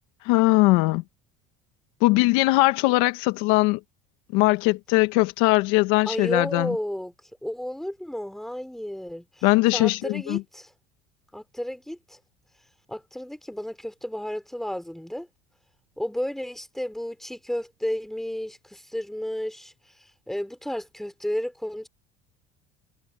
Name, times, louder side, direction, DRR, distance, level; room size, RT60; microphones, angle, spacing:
voice 1, 0.2-1.0 2.0-3.8 4.3-6.7 9.4-10.4, left 22 dB, 80° left, 1.5 m, -20 dB
voice 2, 6.1-7.1 7.4-9.4 9.7-10.7 11.3-12.2 12.9-15.3 16.0-21.9, equal, ahead, 3.7 m, -32 dB
cardioid pair, 130°, 19 cm